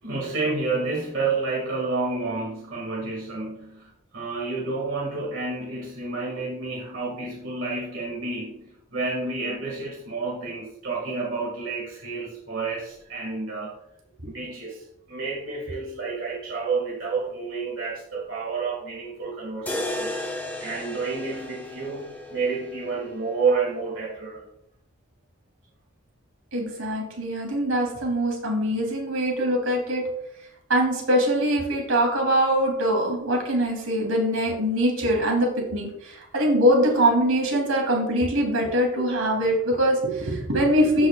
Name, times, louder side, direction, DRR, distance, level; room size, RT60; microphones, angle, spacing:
voice 1, 0.0-13.7 14.2-20.1 20.6-24.4, right 4 dB, 60° right, -5 dB, 2.0 m, -30 dB
sound 1, 19.7-23.7, left 1 dB, 10° left, 1.0 m, -34 dB
voice 2, 26.5-30.0 30.7-41.1, equal, 80° right, 0 dB, 2.7 m, -23 dB
14.0 x 5.5 x 2.3 m, 0.79 s
head